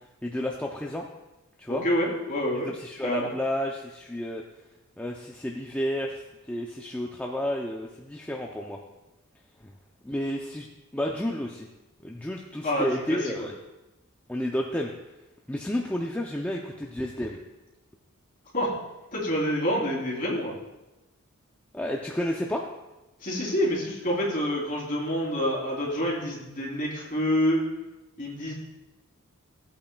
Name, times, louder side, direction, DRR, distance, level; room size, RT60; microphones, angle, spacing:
voice 1, 0.2-1.1 1.6-1.8 2.7-4.4 5.0-6.2 6.5-8.8 9.6-9.7 10.0-10.7 10.9-11.7 12.0-13.5 14.3-14.9 15.5-17.4 21.7-22.6, left 1 dB, 5° left, 0 dB, 0.4 m, -31 dB
voice 2, 1.7-2.7 3.0-3.3 12.6-13.5 18.5-18.7 19.1-20.5 23.2-27.6 28.2-28.5, equal, 35° left, -5 dB, 3.2 m, -27 dB
15.5 x 8.6 x 2.2 m, 1.0 s
head